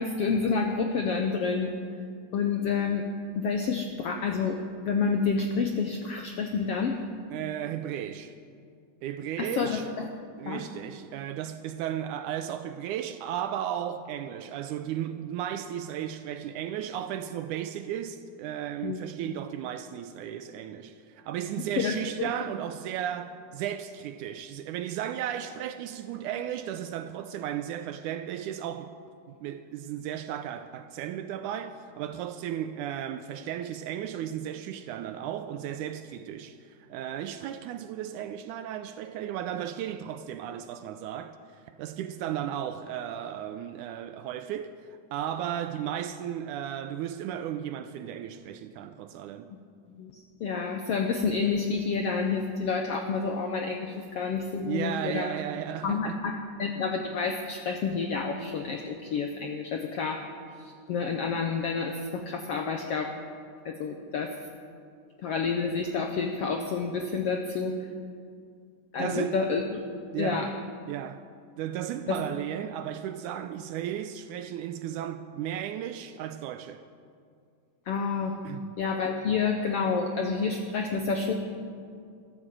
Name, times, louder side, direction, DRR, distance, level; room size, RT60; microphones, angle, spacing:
voice 1, 0.0-1.7 2.3-3.1 3.3-4.6 4.9-7.0 9.4-10.1 10.5-10.6 18.8-19.0 21.8-22.3 50.0-55.3 55.8-60.3 60.6-63.1 63.6-64.3 65.2-67.8 68.9-69.8 70.2-70.5 72.1-72.2 77.9-78.3 78.8-81.3, left 5 dB, 75° left, 1.3 m, -29 dB
voice 2, 7.3-8.3 9.0-9.9 10.4-28.9 29.3-49.5 54.6-56.2 69.0-69.4 70.1-70.5 70.9-71.3 71.6-76.8 78.4-78.7, right 10 dB, 80° right, 1.9 m, -35 dB
14.0 x 12.5 x 7.7 m
omnidirectional pair, 3.9 m